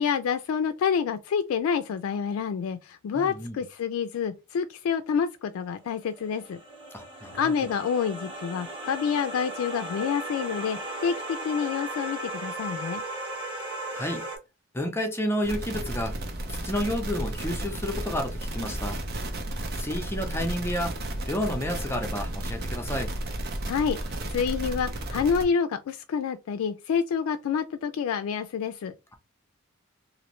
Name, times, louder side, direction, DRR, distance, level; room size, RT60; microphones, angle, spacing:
voice 1, 0.0-6.6 7.4-13.0 23.7-24.0 24.3-28.9, left 6 dB, 80° left, 0.3 m, -28 dB
voice 2, 3.1-3.6 6.9-7.4 13.9-14.2 14.7-16.1 16.5-19.0 19.8-20.9 21.3-23.1, left 1 dB, 10° left, 0.5 m, -30 dB
sound 1, 5.9-14.4, right 1 dB, 25° right, 1.1 m, -36 dB
sound 2, 15.4-25.4, right 1 dB, 50° right, 0.6 m, -33 dB
3.0 x 2.5 x 3.0 m
head